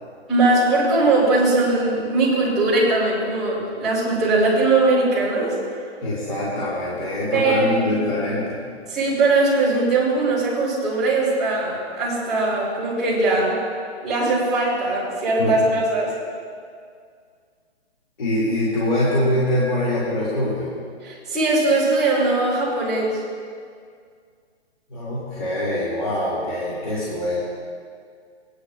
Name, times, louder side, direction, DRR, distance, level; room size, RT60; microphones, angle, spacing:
voice 1, 0.3-5.6 7.3-7.6 8.9-13.6 14.0-16.1 21.0-23.2, right 2 dB, ahead, -15 dB, 2.5 m, -20 dB
voice 2, 6.0-8.6 15.4-15.6 18.2-20.7 24.9-27.4, left 1 dB, 45° left, -9 dB, 2.2 m, -23 dB
19.5 x 10.0 x 2.4 m, 2.1 s
hypercardioid pair, 175°, 34 cm